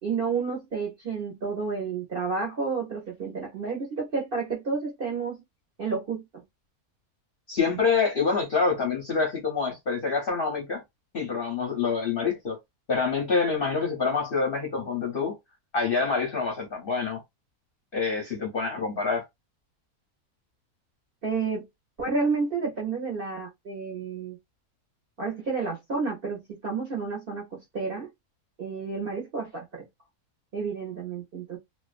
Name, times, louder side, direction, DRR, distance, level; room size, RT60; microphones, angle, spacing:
voice 1, 0.0-5.4 5.8-6.4 21.2-21.7 22.0-24.4 25.2-28.1 28.6-29.9 30.5-31.6, right 4 dB, 50° right, 0.7 m, -30 dB
voice 2, 7.5-10.8 11.1-12.6 12.9-15.4 15.7-17.2 17.9-19.2, left 5 dB, 50° left, 0.7 m, -26 dB
2.5 x 2.2 x 2.3 m
omnidirectional pair, 1.6 m